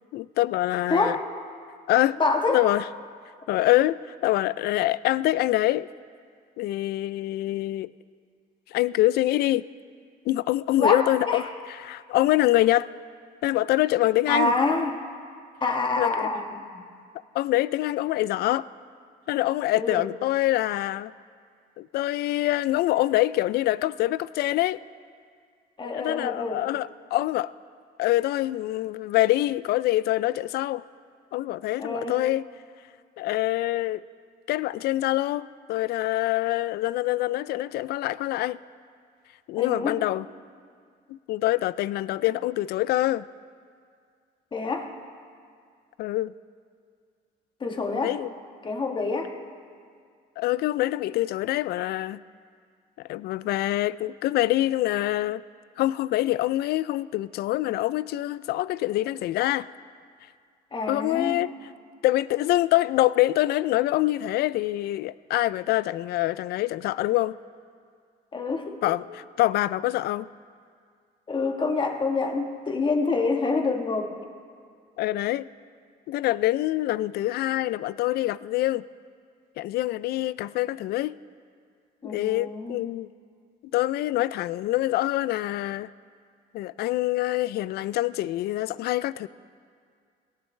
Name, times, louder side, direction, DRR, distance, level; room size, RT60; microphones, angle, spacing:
voice 1, 0.1-1.2 1.9-2.2 2.5-2.8 3.5-5.9 6.6-7.9 8.7-9.6 10.3-11.4 11.8-12.9 13.4-14.5 16.0-16.3 17.3-18.7 19.3-21.1 21.8-24.8 25.8-27.5 28.0-30.8 31.3-32.4 33.2-34.0 34.5-38.6 39.5-40.3 41.1-43.2 46.0-46.3 48.0-48.3 50.4-52.2 53.1-55.4 55.8-59.7 60.9-61.5 62.0-67.4 68.8-70.3 75.0-75.5 76.1-78.8 79.6-81.2 82.0-83.1 83.7-85.9 86.5-89.3, left 16 dB, 70° left, 18 dB, 0.4 m, -25 dB
voice 2, 0.9-1.3 2.2-2.6 10.8-11.4 14.3-14.9 15.6-16.8 19.7-20.1 25.8-26.6 31.8-32.2 39.5-40.0 44.5-44.9 47.6-48.2 48.6-49.4 60.7-61.4 68.3-68.9 71.3-74.2 82.0-82.9, left 3 dB, 30° left, 4 dB, 1.4 m, -27 dB
17.5 x 17.5 x 3.3 m, 2.1 s
cardioid pair, 110°, 17 cm